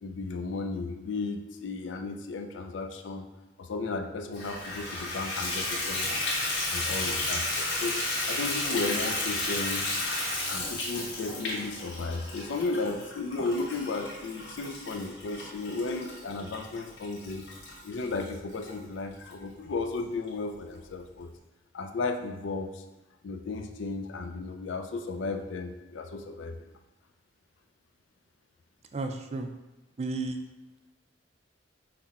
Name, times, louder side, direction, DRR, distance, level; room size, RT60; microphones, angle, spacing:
voice 1, 0.0-3.3 3.6-6.1 6.7-9.9 10.4-17.4 17.8-21.3 21.7-22.8 23.2-26.7, left 3 dB, 80° left, 6 dB, 0.5 m, -34 dB
Water tap faucet / Bathtub (filling or washing), 4.3-18.7 19.3-19.4 19.9-20.0 20.3-20.4, left 2 dB, 65° left, 1.4 m, -33 dB
voice 2, 28.9-29.5 30.0-30.4, right 3 dB, 35° right, 5 dB, 0.4 m, -32 dB
5.8 x 2.2 x 4.1 m, 1.1 s
head